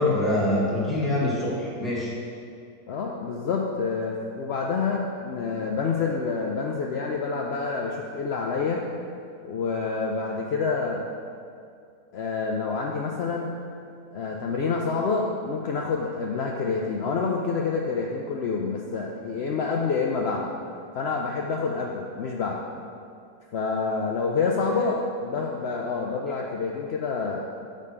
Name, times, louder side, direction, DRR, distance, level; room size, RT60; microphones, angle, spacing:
voice 1, 0.0-2.1, left 1 dB, ahead, -8 dB, 1.7 m, -24 dB
voice 2, 2.9-8.8 9.4-11.0 12.1-13.5 14.1-20.5 20.9-22.6 23.5-27.4, left 4 dB, 70° left, -1 dB, 0.6 m, -27 dB
5.4 x 5.2 x 6.6 m, 2.3 s
omnidirectional pair, 1.7 m